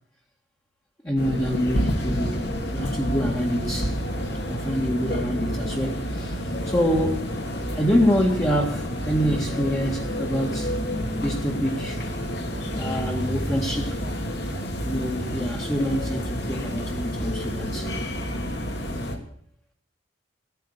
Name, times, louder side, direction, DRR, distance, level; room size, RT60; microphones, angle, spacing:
voice 1, 1.0-2.4 2.7-4.0 4.5-7.3 7.7-10.7 11.2-12.0 12.6-14.0 14.8-17.9, equal, 15° left, 2.0 m, -26 dB
sound 1, 1.2-19.2, equal, 55° left, 2.6 m, -29 dB
16.0 x 9.5 x 8.3 m
head